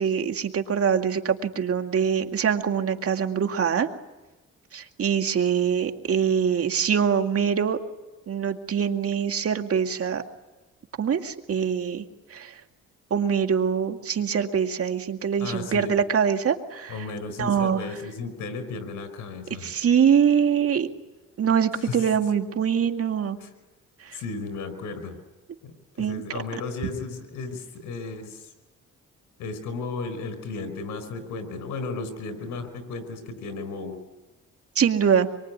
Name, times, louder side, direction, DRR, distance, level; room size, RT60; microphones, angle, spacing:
voice 1, 0.0-3.9 4.7-7.8 8.3-10.2 11.0-12.0 12.3-12.5 13.1-17.0 17.4-17.8 19.5-20.9 21.4-23.4 24.0-24.2 26.0-26.2 34.8-35.3, right 7 dB, 50° right, 6 dB, 2.2 m, -24 dB
voice 2, 15.4-16.0 16.9-19.7 21.7-22.1 23.4-23.5 24.1-25.2 25.6-28.5 29.4-34.0, left 4 dB, 90° left, 10 dB, 5.0 m, -34 dB
26.0 x 23.5 x 9.7 m, 1.1 s
cardioid pair, 90°, 30 cm